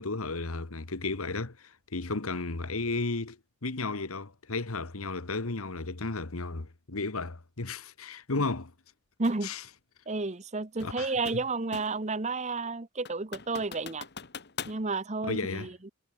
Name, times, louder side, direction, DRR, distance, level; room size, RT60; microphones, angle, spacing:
voice 1, 0.0-8.7 9.4-9.6 10.8-11.4 15.2-15.7, left 3 dB, 90° left, 1.5 m, -34 dB
sound 1, 9.2-9.5 10.8-12.1 12.5-12.6 13.1-14.8, left 6 dB, 50° left, 1.7 m, -42 dB
voice 2, 9.2-9.5 10.1-14.0 14.7-15.7, right 3 dB, 35° right, 1.1 m, -31 dB
head